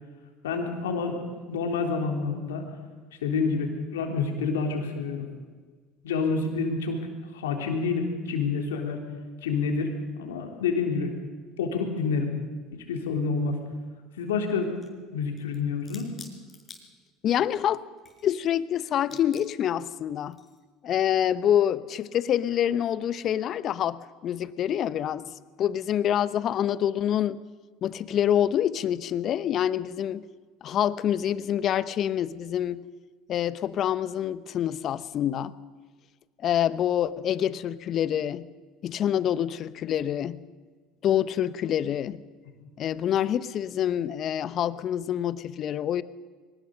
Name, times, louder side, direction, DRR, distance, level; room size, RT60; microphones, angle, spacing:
voice 1, 0.4-1.2 1.5-2.6 3.2-5.3 6.0-7.0 7.3-9.0 9.4-9.9 10.2-11.1 11.6-12.3 12.7-13.6 14.2-14.7 15.1-16.1 42.6-42.7, left 4 dB, 85° left, 3 dB, 3.5 m, -28 dB
sound 1, 14.2-15.0 15.4-17.4 17.8-18.7 19.0-19.7 20.3-20.6, left 4 dB, 25° left, 5.1 m, -50 dB
voice 2, 17.2-17.8 18.2-20.4 20.8-25.3 25.6-27.4 27.8-30.3 30.6-32.8 33.3-35.5 36.4-38.5 38.8-40.4 41.0-42.2 42.8-46.0, left 10 dB, 50° left, 16 dB, 0.9 m, -26 dB
22.5 x 19.5 x 6.7 m, 1.4 s
hypercardioid pair, 75°, 0 cm